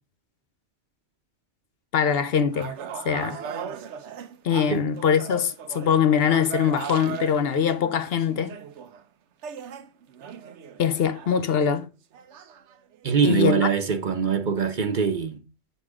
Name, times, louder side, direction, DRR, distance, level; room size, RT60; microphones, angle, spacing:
voice 1, 1.9-2.7 3.0-3.4 4.4-8.6 10.8-11.9 13.2-13.6, left 7 dB, 65° left, 0.8 m, -22 dB
sound 1, 2.5-9.0 9.4-11.9 12.1-13.1, right 8 dB, 85° right, 1.0 m, -38 dB
voice 2, 13.0-15.4, right 6 dB, 50° right, 0.9 m, -23 dB
7.4 x 4.1 x 4.8 m
omnidirectional pair, 1.2 m